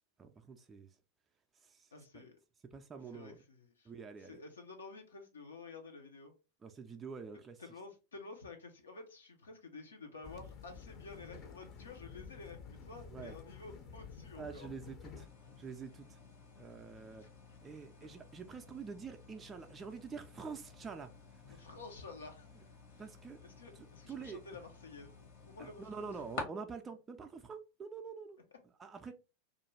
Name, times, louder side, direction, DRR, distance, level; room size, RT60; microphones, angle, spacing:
voice 1, 0.2-0.9 1.7-1.9 2.1-2.2 2.7-3.4 3.9-4.4 6.6-7.6 13.1-13.3 14.4-15.3 15.6-16.2 16.6-17.3 17.6-21.1 21.5-21.6 23.0-23.4 23.7-24.4 25.6-28.4 28.8-29.1, right 5 dB, 20° right, 0.3 m, -46 dB
voice 2, 1.9-2.4 3.1-3.9 4.2-6.3 7.6-14.7 18.0-18.2 21.5-22.5 22.9-23.0 23.4-26.2, left 3 dB, 85° left, 0.6 m, -51 dB
sound 1, 10.2-15.3, left 6 dB, 45° left, 0.6 m, -51 dB
sound 2, 15.2-26.4, left 3 dB, 65° left, 1.0 m, -52 dB
2.4 x 2.2 x 3.0 m
hypercardioid pair, 95°, 0 cm